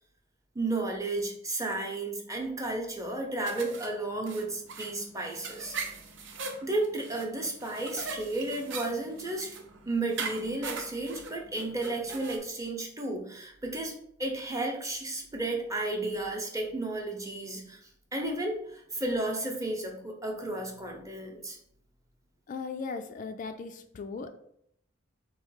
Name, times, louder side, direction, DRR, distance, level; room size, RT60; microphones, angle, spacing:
voice 1, 0.5-5.8 6.6-9.5 9.9-13.9 14.2-17.8 18.1-21.6, right 2 dB, 15° right, 1 dB, 0.8 m, -33 dB
sound 1, 3.4-12.4, right 4 dB, 70° right, 0.7 m, -41 dB
voice 2, 22.5-24.3, left 4 dB, 40° left, 7 dB, 0.3 m, -37 dB
3.6 x 3.1 x 4.7 m, 0.70 s
head